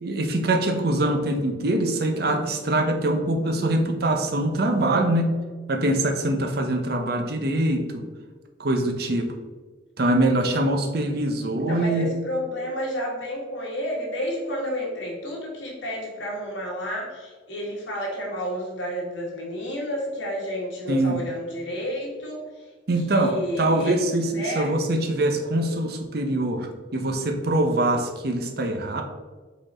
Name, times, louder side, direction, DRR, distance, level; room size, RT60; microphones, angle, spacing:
voice 1, 0.0-5.3 5.7-8.0 8.6-9.3 10.0-12.1 20.9-21.2 22.9-29.0, right 1 dB, 55° right, 4 dB, 0.8 m, -23 dB
voice 2, 11.6-22.4 23.0-24.0 24.3-24.7, equal, 85° left, -2 dB, 1.8 m, -31 dB
5.1 x 4.2 x 4.3 m, 1.4 s
head